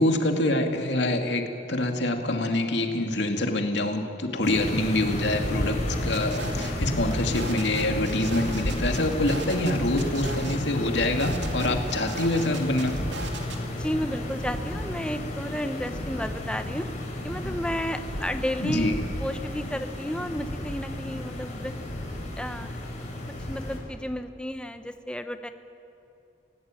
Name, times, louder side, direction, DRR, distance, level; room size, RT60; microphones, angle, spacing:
voice 1, 0.0-1.4 1.7-12.9 18.6-18.9, left 1 dB, 65° left, 4 dB, 2.5 m, -26 dB
sound 1, 4.4-23.8, left 1 dB, 40° left, 6.0 m, -32 dB
sound 2, 5.9-6.7 7.1-10.5 10.9-13.6, right 2 dB, 70° right, 2.8 m, -37 dB
voice 2, 13.8-16.9 17.2-18.9 19.2-21.7 22.1-23.1 23.5-25.5, equal, 5° left, 8 dB, 1.1 m, -32 dB
28.5 x 17.5 x 9.1 m, 2.8 s
head